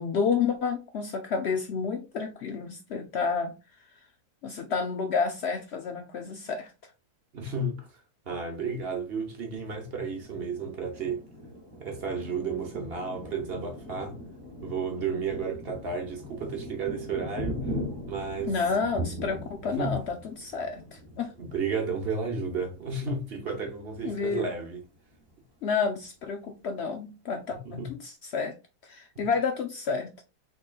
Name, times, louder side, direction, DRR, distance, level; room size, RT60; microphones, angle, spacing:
voice 1, 0.0-3.6 4.4-6.7 18.5-21.3 24.0-24.5 25.6-28.6 28.8-30.1, left 5 dB, 70° left, 0.6 m, -30 dB
voice 2, 7.3-11.3 11.8-14.2 14.6-17.6 18.1-18.6 19.7-20.0 21.4-24.8 27.5-27.9 29.1-29.2, right 4 dB, 45° right, 1.0 m, -32 dB
Thunder, 9.7-24.0 24.5-24.6 24.9-25.5, equal, 15° right, 1.1 m, -41 dB
3.8 x 3.8 x 2.4 m
omnidirectional pair, 1.7 m